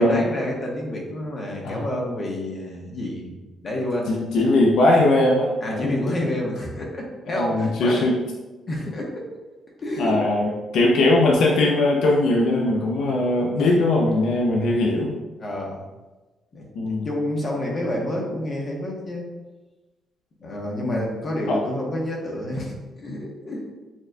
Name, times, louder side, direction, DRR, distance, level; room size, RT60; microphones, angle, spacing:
voice 1, 0.0-3.3 3.6-4.3 5.6-8.0 8.7-9.3 9.8-10.2 13.6-13.7 14.7-14.8 15.4-15.8 16.5-19.3 20.4-22.7 23.0-23.6, left 1 dB, 40° left, -1 dB, 1.0 m, -29 dB
voice 2, 4.1-5.9 7.3-8.1 10.0-15.2 16.8-17.1 20.8-21.0 21.5-21.6, left 2 dB, 75° left, -2 dB, 0.5 m, -20 dB
7.1 x 2.5 x 2.2 m, 1.2 s
cardioid pair, 90°, 0 cm